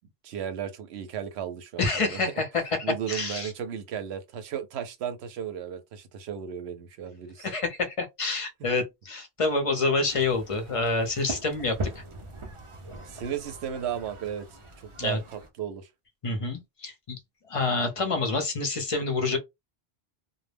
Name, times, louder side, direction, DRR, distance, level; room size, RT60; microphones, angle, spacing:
voice 1, 0.2-2.2 2.8-7.5 13.1-14.5 14.8-15.9, right 8 dB, 85° right, 0.8 m, -35 dB
voice 2, 1.8-3.5 7.4-12.0 15.0-15.2 16.2-17.2 17.5-19.4, left 3 dB, 40° left, 0.6 m, -27 dB
sound 1, 10.1-15.5, right 1 dB, 40° right, 0.4 m, -40 dB
2.1 x 2.1 x 3.3 m
omnidirectional pair, 1.1 m